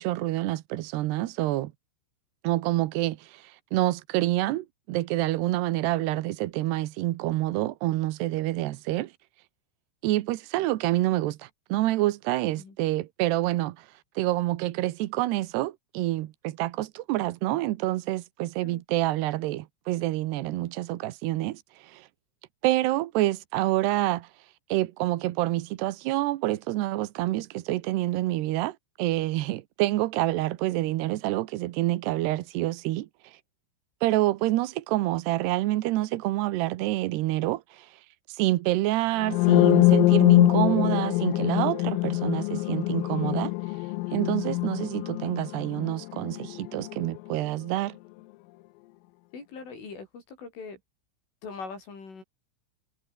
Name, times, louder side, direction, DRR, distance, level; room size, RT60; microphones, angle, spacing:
voice 1, 0.0-1.7 2.4-9.1 10.0-13.9 14.2-22.1 22.6-24.3 24.7-33.1 34.0-37.9 38.3-43.5 44.1-48.0, right 17 dB, 75° right, 2.5 m, -27 dB
sound 1, 39.2-47.1, left 21 dB, 85° left, 3.4 m, -23 dB
voice 2, 49.3-50.8 51.4-52.2, left 4 dB, 70° left, 10.5 m, -41 dB
omnidirectional pair, 5.9 m